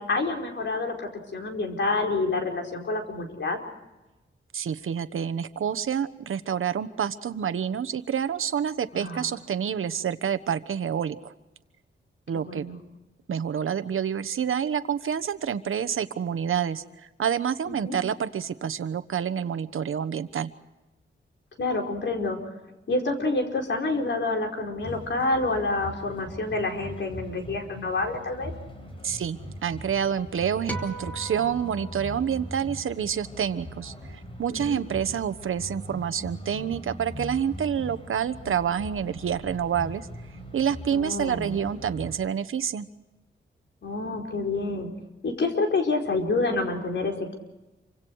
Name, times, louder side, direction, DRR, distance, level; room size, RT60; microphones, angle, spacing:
voice 1, 0.0-3.6 8.9-9.3 12.3-12.8 17.7-18.0 21.6-22.4 22.9-28.5 34.5-34.8 40.9-41.5 43.8-44.9 45.2-47.3, left 3 dB, 65° left, 2 dB, 4.8 m, -28 dB
voice 2, 4.5-11.3 12.3-12.7 13.3-20.5 29.0-40.1 40.5-42.9, right 8 dB, 80° right, 12 dB, 1.2 m, -28 dB
sound 1, 24.8-42.2, equal, 25° left, 5.0 m, -41 dB
sound 2, 30.7-33.2, right 2 dB, 5° left, 3.0 m, -39 dB
28.0 x 25.0 x 4.8 m, 1.0 s
wide cardioid pair, 145°, 21 cm